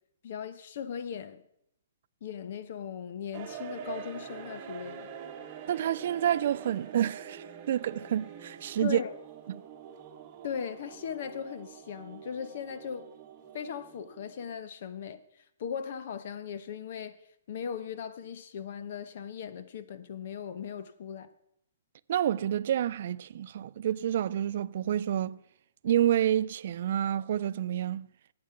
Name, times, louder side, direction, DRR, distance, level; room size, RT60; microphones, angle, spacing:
voice 1, 0.2-1.4 2.2-5.1 8.8-9.1 10.4-13.1 13.5-17.1 17.5-21.3, left 7 dB, 50° left, 0.9 m, -38 dB
sound 1, 3.3-14.6, right 8 dB, 30° right, 1.2 m, -45 dB
voice 2, 5.7-9.0 22.1-25.4 25.8-28.1, right 11 dB, 50° right, 0.3 m, -28 dB
11.0 x 8.7 x 5.8 m
hypercardioid pair, 160°, 0 cm